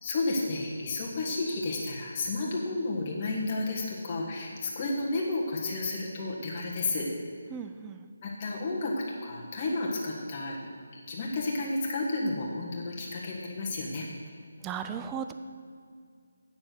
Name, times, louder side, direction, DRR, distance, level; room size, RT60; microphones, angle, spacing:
voice 1, 0.0-7.1 8.2-10.6 10.9-14.1, left 2 dB, 20° left, -3 dB, 1.5 m, -32 dB
voice 2, 7.5-8.0 14.6-15.3, right 7 dB, 10° right, 8 dB, 0.3 m, -36 dB
8.5 x 7.1 x 8.1 m, 2.2 s
hypercardioid pair, 175°, 0 cm